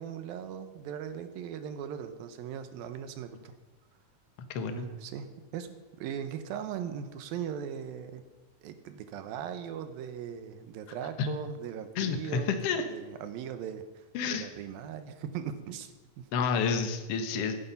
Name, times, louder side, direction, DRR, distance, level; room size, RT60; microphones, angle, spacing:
voice 1, 0.0-3.5 4.7-8.2 8.6-12.5 12.9-16.3, right 8 dB, 85° right, 9 dB, 2.8 m, -39 dB
voice 2, 4.5-4.9 11.2-11.4 12.0-12.8 14.1-14.5 16.3-17.6, left 6 dB, 60° left, 7 dB, 1.7 m, -29 dB
16.0 x 10.0 x 5.5 m, 1.2 s
omnidirectional pair, 4.1 m